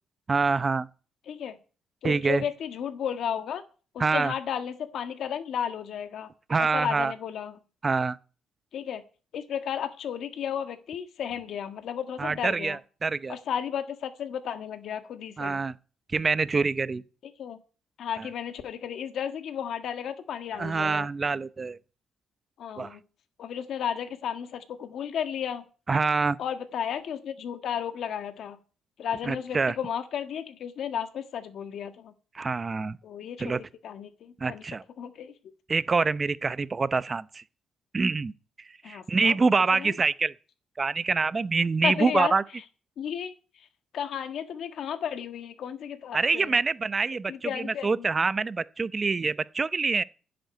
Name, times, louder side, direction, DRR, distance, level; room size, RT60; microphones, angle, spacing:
voice 1, 0.3-0.9 2.0-2.4 4.0-4.3 6.5-7.1 7.8-8.2 12.2-13.4 15.4-15.7 16.1-17.0 18.2-18.3 20.5-21.8 22.8-23.0 25.9-26.4 29.3-29.7 32.3-33.0 33.4-33.6 34.4-34.8 35.7-37.4 37.9-38.3 38.9-40.3 40.8-42.4 46.1-50.0, right 4 dB, 30° right, 0.7 m, -26 dB
voice 2, 1.3-1.6 2.0-3.6 3.9-6.3 6.6-7.6 8.7-9.0 9.3-12.8 13.3-15.6 17.2-17.6 18.0-21.1 22.6-23.0 23.4-25.6 26.4-28.6 29.0-32.1 33.0-34.6 35.0-35.5 38.8-39.4 39.7-39.9 41.8-42.3 43.0-43.7 43.9-46.6 47.3-48.1, left 8 dB, 70° left, 1.6 m, -33 dB
10.5 x 7.8 x 9.3 m
cardioid pair, 90°, 0 cm